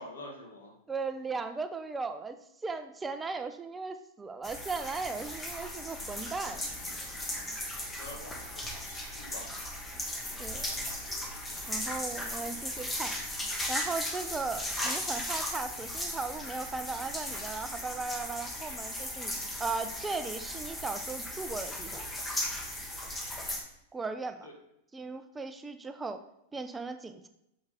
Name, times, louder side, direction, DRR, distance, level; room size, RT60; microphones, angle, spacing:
voice 1, 0.0-0.7 7.9-9.5 24.4-24.5, left 2 dB, 85° left, 1 dB, 1.9 m, -46 dB
voice 2, 0.9-6.7 10.4-10.7 11.7-13.2 13.7-19.3 19.6-22.0 23.9-24.5 24.9-26.2 26.5-27.3, right 4 dB, 15° right, 8 dB, 0.5 m, -37 dB
sound 1, 4.4-23.6, left 1 dB, 10° left, 1.2 m, -37 dB
6.7 x 5.5 x 3.4 m, 0.81 s
hypercardioid pair, 110°, 0 cm